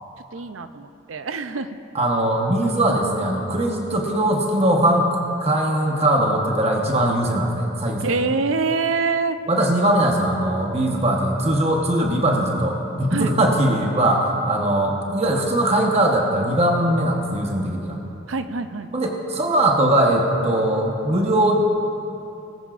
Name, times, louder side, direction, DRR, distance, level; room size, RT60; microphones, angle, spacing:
voice 1, 0.3-1.8 8.0-9.4 13.1-13.3 18.3-18.9, right 4 dB, 85° right, 10 dB, 0.6 m, -25 dB
voice 2, 1.9-8.1 9.5-18.0 18.9-21.5, right 1 dB, 35° right, 0 dB, 1.1 m, -20 dB
19.5 x 15.5 x 2.5 m, 2.8 s
head